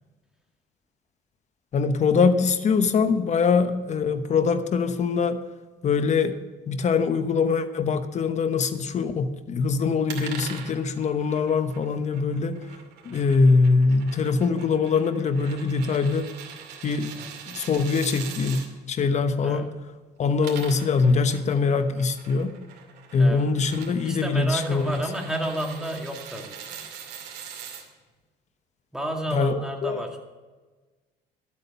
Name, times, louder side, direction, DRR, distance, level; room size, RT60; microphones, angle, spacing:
voice 1, 1.7-5.4 5.8-6.4 6.7-12.6 13.0-16.3 16.8-17.1 17.5-19.7 20.2-22.5 23.1-25.0 29.3-30.2, left 4 dB, 45° left, 10 dB, 1.0 m, -23 dB
sound 1, 10.1-18.7 20.2-27.8, right 7 dB, 80° right, 2.4 m, -42 dB
voice 2, 24.0-26.8 28.9-30.2, right 1 dB, 5° right, 1 dB, 2.2 m, -31 dB
12.0 x 8.5 x 5.5 m, 1.3 s
cardioid pair, 110°, 17 cm